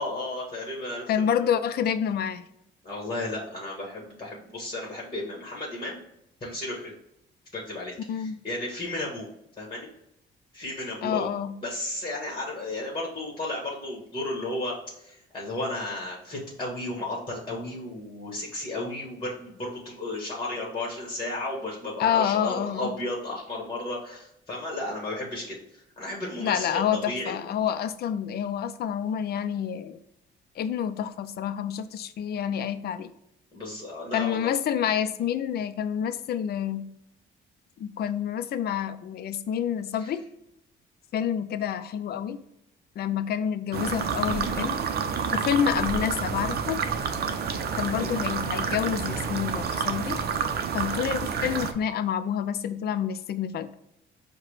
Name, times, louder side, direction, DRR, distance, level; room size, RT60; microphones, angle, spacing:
voice 1, 0.0-1.3 2.8-6.0 6.4-6.9 7.5-9.3 9.6-9.9 10.5-11.3 11.6-26.8 27.1-27.4 33.5-34.5 40.0-40.1 48.0-48.1, left 2 dB, 25° left, -2 dB, 1.2 m, -34 dB
voice 2, 1.1-2.4 8.1-8.4 11.0-11.5 22.0-22.9 26.4-30.0 30.6-33.1 34.1-36.9 37.8-40.3 41.1-42.4 43.0-44.8 45.3-46.8 47.7-50.2 50.7-53.7, left 9 dB, 55° left, 11 dB, 0.4 m, -28 dB
sound 1, 43.7-51.7, right 6 dB, 55° right, 0.5 m, -29 dB
4.7 x 2.2 x 4.7 m, 0.80 s
cardioid pair, 90°, 20 cm